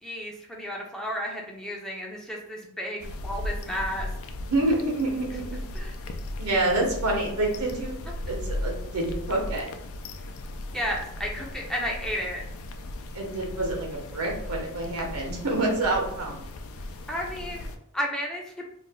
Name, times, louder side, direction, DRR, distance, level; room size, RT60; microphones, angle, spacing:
voice 1, 0.0-4.1 5.7-5.9 10.7-12.4 17.1-18.6, equal, 5° left, -2 dB, 0.4 m, -32 dB
sound 1, 3.0-17.8, left 1 dB, 65° left, 0.4 m, -37 dB
voice 2, 4.4-5.6 6.4-8.0 8.2-9.6 13.1-16.4, right 2 dB, 85° right, 0 dB, 1.0 m, -27 dB
2.6 x 2.1 x 3.8 m, 0.70 s
head